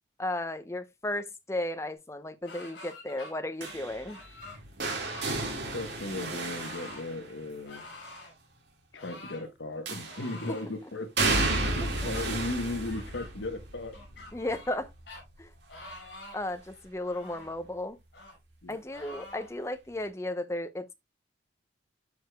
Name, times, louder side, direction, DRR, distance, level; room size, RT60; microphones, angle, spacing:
voice 1, 0.2-4.2 10.5-10.6 12.0-12.1 14.3-14.9 15.4-15.5 16.3-18.0 18.7-20.9, left 1 dB, 15° left, 0.6 m, -34 dB
sound 1, 2.4-3.3 3.6-4.6 5.0-5.6 6.4-7.1 7.7-8.3 9.0-9.5 10.1-10.7 11.3-12.3 12.9-13.3 13.9-14.8 15.1-15.2 15.7-16.5 17.0-17.6 18.1-18.4 18.9-19.5, left 2 dB, 55° left, 5.8 m, -47 dB
sound 2, 3.6-7.7 9.9-10.5 11.2-17.0 17.3-17.7 19.0-19.1, right 2 dB, 65° right, 1.9 m, -33 dB
voice 2, 5.7-7.8 8.9-11.4 11.7-14.0 18.6-18.8, left 2 dB, 70° left, 1.1 m, -36 dB
12.5 x 4.8 x 2.2 m
head